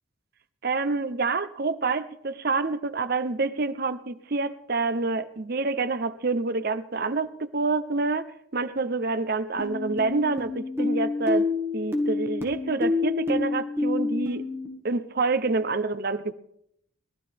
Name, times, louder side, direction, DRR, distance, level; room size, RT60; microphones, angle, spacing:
voice 1, 0.6-8.3 8.5-14.4 14.8-16.3, right 3 dB, 50° right, 11 dB, 0.7 m, -27 dB
sound 1, 9.6-14.7, left 3 dB, 10° right, 1.8 m, -28 dB
20.5 x 13.0 x 3.5 m, 0.73 s
head